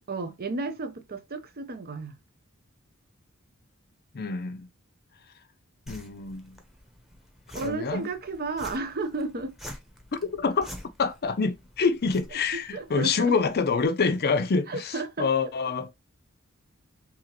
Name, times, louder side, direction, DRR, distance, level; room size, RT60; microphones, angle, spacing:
voice 1, 0.1-2.2 7.5-9.5 12.5-13.4 14.7-15.3, right 3 dB, 45° right, 0.8 m, -33 dB
voice 2, 4.1-4.7 5.9-6.6 7.6-8.1 10.2-10.7 11.0-15.9, left 5 dB, 45° left, 0.6 m, -26 dB
sound 1, 5.9-13.9, equal, ahead, 1.0 m, -47 dB
5.0 x 3.5 x 3.0 m
head